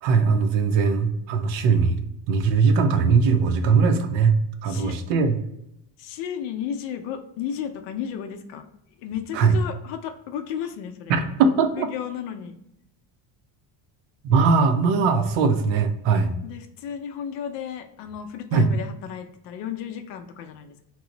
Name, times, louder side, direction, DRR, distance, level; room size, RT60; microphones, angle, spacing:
voice 1, 0.0-2.0 2.3-5.4 9.3-9.5 11.1-11.9 14.2-16.3 18.5-18.7, right 5 dB, 90° right, 7 dB, 0.6 m, -20 dB
voice 2, 4.6-5.0 6.0-8.7 9.0-11.2 11.8-12.6 16.4-20.8, left 8 dB, 70° left, 6 dB, 0.6 m, -33 dB
3.0 x 2.0 x 3.8 m, 0.80 s
cardioid pair, 150°, 44 cm